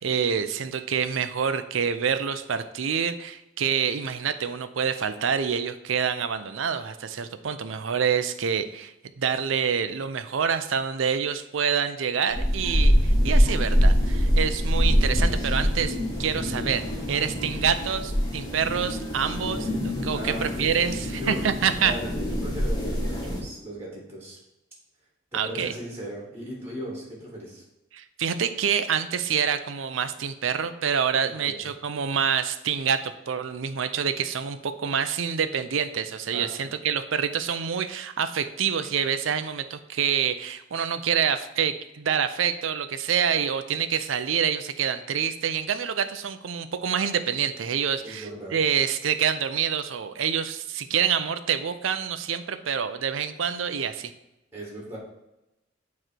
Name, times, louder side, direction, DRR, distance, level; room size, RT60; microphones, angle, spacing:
voice 1, 0.0-16.8 17.1-19.7 20.0-21.9 25.3-25.7 27.9-54.1, right 7 dB, 80° right, 11 dB, 0.5 m, -27 dB
sound 1, 12.3-23.4, equal, 20° left, 1.8 m, -24 dB
voice 2, 20.1-20.6 21.1-21.4 21.8-24.4 25.3-27.6 31.2-31.7 36.3-36.7 48.0-48.6 54.5-55.0, equal, 10° right, -4 dB, 1.6 m, -37 dB
8.9 x 3.2 x 4.4 m, 0.91 s
head